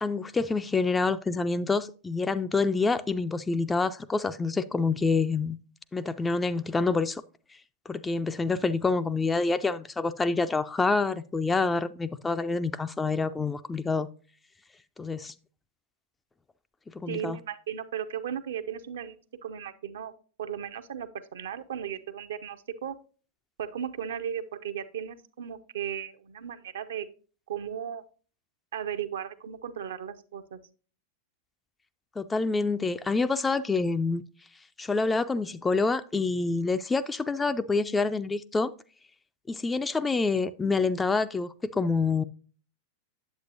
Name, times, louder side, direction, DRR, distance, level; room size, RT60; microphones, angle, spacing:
voice 1, 0.0-5.6 5.9-7.2 7.9-14.1 15.0-15.3 16.9-17.4 32.2-34.2 34.8-38.7 39.5-42.2, left 4 dB, 10° left, 0.3 m, -27 dB
voice 2, 17.1-20.1 20.4-23.0 23.6-27.1 27.5-28.0 28.7-30.6, right 9 dB, 60° right, 0.6 m, -36 dB
8.2 x 7.9 x 2.5 m
figure-of-eight pair, 90°, 0 cm